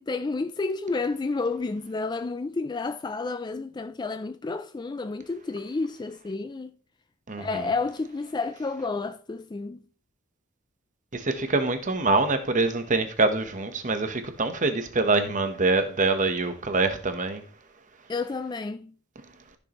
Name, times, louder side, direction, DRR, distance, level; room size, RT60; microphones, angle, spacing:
voice 1, 0.0-6.7 7.4-9.8 18.1-18.9, left 3 dB, 20° left, 0.3 m, -30 dB
voice 2, 7.3-7.6 11.1-17.4, right 3 dB, 35° right, 1.0 m, -25 dB
14.0 x 6.4 x 3.0 m
head